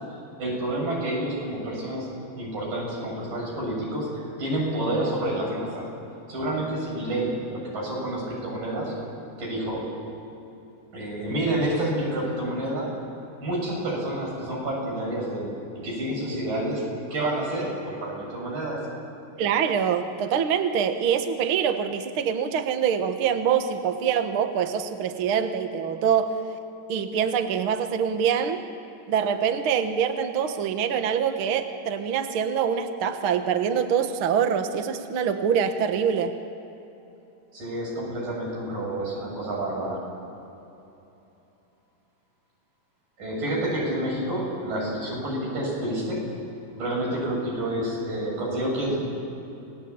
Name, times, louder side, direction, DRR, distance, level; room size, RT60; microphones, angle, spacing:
voice 1, 0.4-2.1 2.4-5.9 6.3-8.9 9.4-9.9 10.9-12.9 13.4-15.5 15.8-16.9 17.1-18.8 37.5-40.0 43.2-46.3 46.8-49.1, right 1 dB, 90° right, -2 dB, 9.2 m, -29 dB
voice 2, 19.4-26.3 26.9-28.6 29.1-36.3, right 7 dB, 55° right, 7 dB, 1.7 m, -25 dB
29.5 x 19.5 x 8.6 m, 3.0 s
omnidirectional pair, 3.8 m